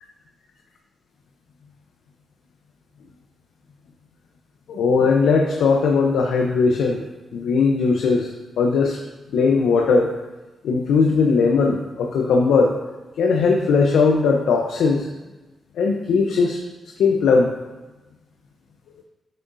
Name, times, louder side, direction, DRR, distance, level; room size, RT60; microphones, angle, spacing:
voice 1, 4.7-7.0 7.3-8.3 8.6-9.0 9.3-10.1 10.6-12.7 13.2-15.1 15.8-16.6 17.0-17.5, left 4 dB, 80° left, 1 dB, 0.7 m, -18 dB
10.0 x 6.2 x 2.7 m, 1.1 s
supercardioid pair, 50°, 0 cm